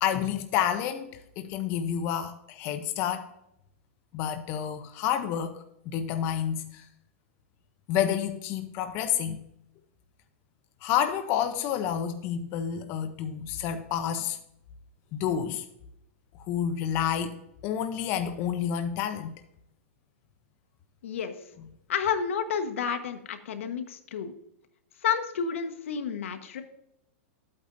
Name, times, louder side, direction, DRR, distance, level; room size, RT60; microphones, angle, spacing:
voice 1, 0.0-3.3 4.1-6.8 7.9-9.4 10.8-14.4 15.1-15.7 16.5-17.3 17.6-19.4, left 9 dB, 35° left, 0.6 m, -29 dB
voice 2, 21.0-21.4 21.9-24.3 25.0-26.6, left 7 dB, 80° left, 1.2 m, -30 dB
12.5 x 8.6 x 2.6 m
supercardioid pair, 155°, 7 cm